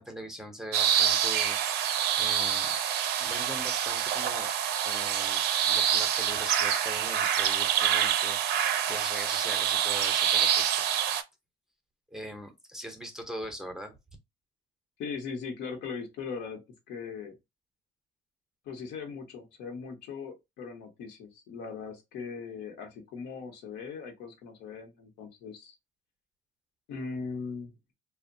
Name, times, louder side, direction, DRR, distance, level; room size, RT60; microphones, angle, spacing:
voice 1, 0.0-1.6 2.2-2.8 3.2-4.5 4.8-10.8 12.1-14.0, equal, 5° right, 0.6 m, -41 dB
sound 1, 0.7-11.2, right 9 dB, 80° right, 0.4 m, -26 dB
voice 2, 15.0-16.6 16.9-17.4 18.6-25.7 26.9-27.7, left 5 dB, 85° left, 0.9 m, -39 dB
2.8 x 2.1 x 2.5 m
cardioid pair, 110°, 17 cm